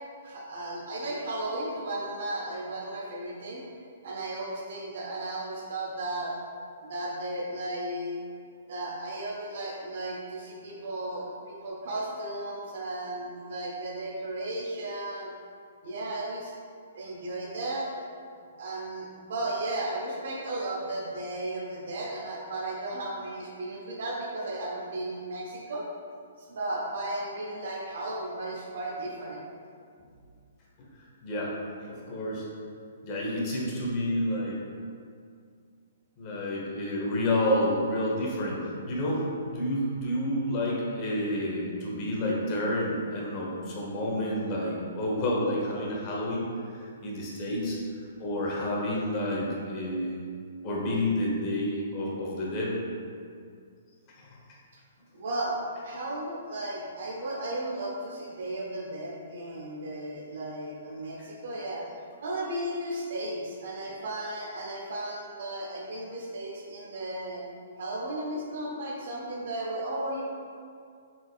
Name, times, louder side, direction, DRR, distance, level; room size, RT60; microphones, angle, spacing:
voice 1, 0.2-3.6 4.0-6.4 6.8-8.2 8.7-15.3 15.8-16.5 16.9-18.0 18.6-25.9 26.4-29.4 55.1-61.9 62.2-67.4 67.8-70.2, right 1 dB, 65° right, -3 dB, 0.7 m, -35 dB
voice 2, 31.2-31.5 31.8-32.5 33.0-34.6 36.2-46.5 46.7-47.8 48.2-50.2 50.6-52.8 54.2-54.4, left 1 dB, 35° left, -4 dB, 0.9 m, -29 dB
4.1 x 3.6 x 2.3 m, 2.2 s
hypercardioid pair, 140°, 0 cm